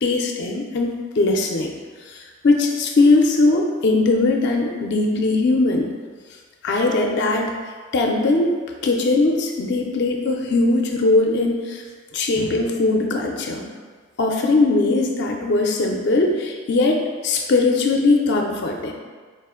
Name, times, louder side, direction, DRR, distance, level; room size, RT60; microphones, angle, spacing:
voice 1, 0.0-1.7 2.1-5.9 6.6-7.5 7.9-8.5 8.8-11.8 12.1-13.6 14.2-18.9, left 2 dB, 55° left, 1 dB, 0.4 m, -20 dB
4.5 x 2.5 x 3.6 m, 1.5 s
head